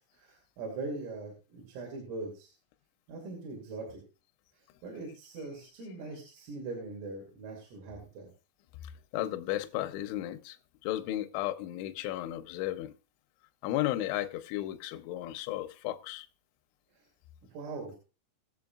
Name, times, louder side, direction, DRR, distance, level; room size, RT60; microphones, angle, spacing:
voice 1, 0.2-2.5 3.1-4.0 4.8-8.3 17.5-18.0, right 3 dB, 75° right, 5.0 m, -41 dB
voice 2, 8.8-10.6 10.8-12.9 13.6-16.3, left 14 dB, 80° left, 2.8 m, -34 dB
22.0 x 7.4 x 2.4 m
omnidirectional pair, 5.9 m